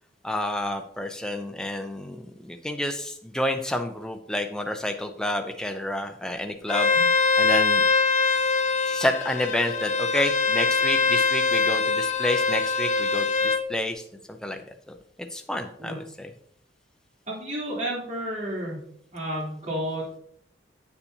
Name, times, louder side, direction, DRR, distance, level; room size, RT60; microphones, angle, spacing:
voice 1, 0.2-6.9 7.4-7.8 8.9-14.6 14.9-15.0 15.3-16.3, left 1 dB, 5° left, 5 dB, 0.5 m, -29 dB
Bowed string instrument, 6.7-13.6, left 4 dB, 45° left, 0.6 m, -23 dB
voice 2, 17.3-18.8 19.1-20.2, right 1 dB, 45° right, -5 dB, 3.2 m, -31 dB
8.5 x 7.0 x 2.7 m, 0.66 s
head